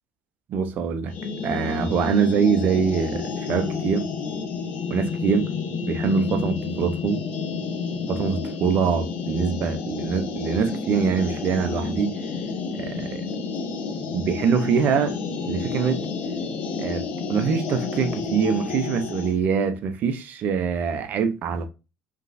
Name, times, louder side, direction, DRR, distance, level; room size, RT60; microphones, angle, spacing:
voice 1, 0.5-1.1 1.4-4.1 4.9-5.5 5.8-7.2 8.1-12.1 12.7-13.3 14.1-15.2 15.5-16.0 16.8-17.0 17.3-21.7, right 6 dB, 55° right, 0.9 m, -24 dB
sound 1, 1.1-19.3, left 4 dB, 60° left, 1.2 m, -30 dB
5.2 x 3.1 x 2.6 m
supercardioid pair, 80°, 3 cm